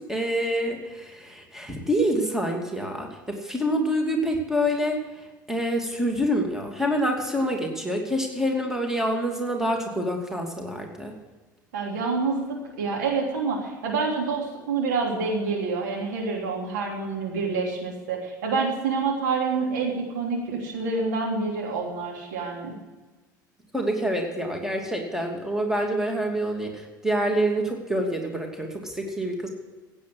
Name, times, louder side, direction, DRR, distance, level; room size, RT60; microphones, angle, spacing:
voice 1, 0.1-5.0 5.5-11.1 23.7-29.5, equal, 5° right, 2 dB, 2.7 m, -26 dB
voice 2, 11.7-22.7, right 4 dB, 65° right, -1 dB, 3.3 m, -27 dB
16.0 x 9.0 x 6.3 m, 1.2 s
figure-of-eight pair, 70°, 10 cm